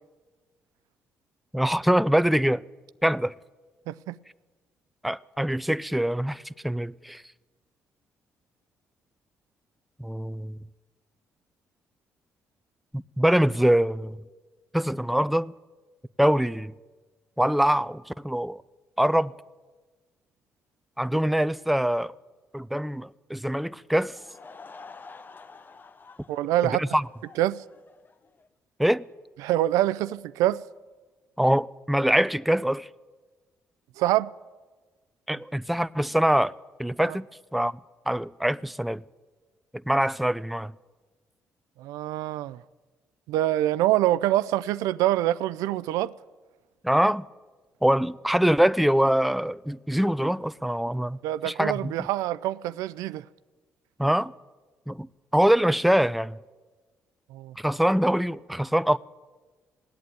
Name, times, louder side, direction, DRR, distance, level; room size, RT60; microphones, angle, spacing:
voice 1, 1.5-2.6 3.0-3.3 5.0-7.2 10.0-10.6 12.9-14.2 14.7-15.5 16.2-16.7 17.4-18.6 19.0-19.3 21.0-22.1 22.5-24.1 26.8-27.0 28.8-29.0 31.4-32.9 35.3-36.5 36.8-37.2 37.5-37.7 38.1-39.0 39.9-40.7 46.8-47.2 47.8-51.2 51.4-51.9 54.0-54.3 54.9-55.1 55.3-56.4 57.6-59.0, equal, ahead, 0.4 m, -24 dB
voice 2, 3.9-4.2 26.3-26.8 27.4-27.6 29.4-30.6 34.0-34.3 37.0-37.2 41.8-42.6 43.3-46.1 51.2-53.2 57.3-57.5, right 14 dB, 90° right, 0.4 m, -25 dB
Laughter / Crowd, 24.0-28.5, left 4 dB, 35° left, 0.7 m, -49 dB
17.5 x 8.7 x 9.2 m
cardioid pair, 80°, 6 cm